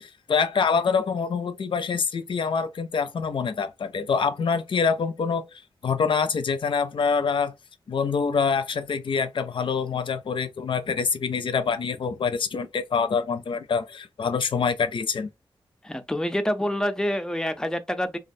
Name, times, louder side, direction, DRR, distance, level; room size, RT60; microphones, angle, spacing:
voice 1, 0.0-5.4 5.8-7.5 7.9-15.3, left 5 dB, 65° left, 0.5 m, -25 dB
voice 2, 15.8-18.2, equal, 5° left, 0.5 m, -27 dB
3.1 x 2.4 x 2.6 m
wide cardioid pair, 100°, 9 cm